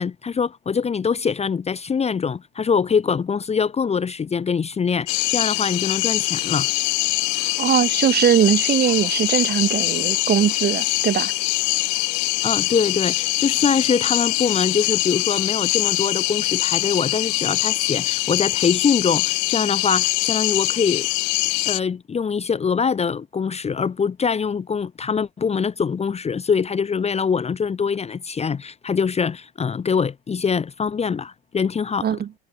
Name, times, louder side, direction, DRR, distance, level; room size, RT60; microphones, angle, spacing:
voice 1, 0.0-6.7 12.4-21.1 21.6-32.1, left 6 dB, 20° left, 1.0 m, -23 dB
sound 1, 5.1-21.8, left 35 dB, 55° left, 0.4 m, -23 dB
voice 2, 7.6-11.3 32.0-32.3, right 9 dB, 30° right, 1.3 m, -20 dB
hypercardioid pair, 85°, 32 cm